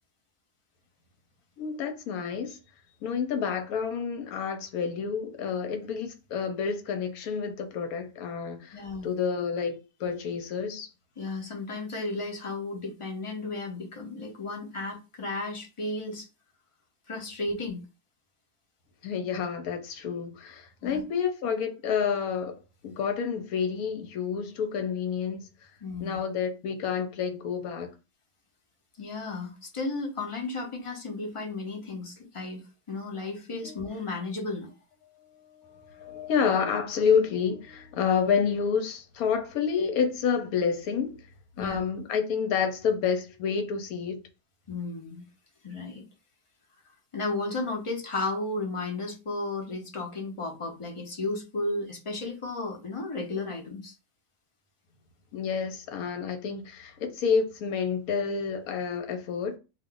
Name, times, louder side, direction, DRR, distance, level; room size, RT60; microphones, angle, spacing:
voice 1, 1.6-2.6 3.0-10.9 19.0-22.6 22.8-25.5 26.0-27.9 33.6-33.7 35.6-41.2 41.6-44.2 55.3-59.6, left 6 dB, 75° left, 1.1 m, -29 dB
voice 2, 8.7-9.1 11.2-16.3 17.1-17.8 20.8-21.0 25.8-26.2 29.0-32.6 32.9-34.7 41.6-41.8 44.7-45.2 45.6-46.0 47.1-53.9, left 2 dB, 35° left, 0.5 m, -34 dB
2.5 x 2.3 x 3.7 m
omnidirectional pair, 1.6 m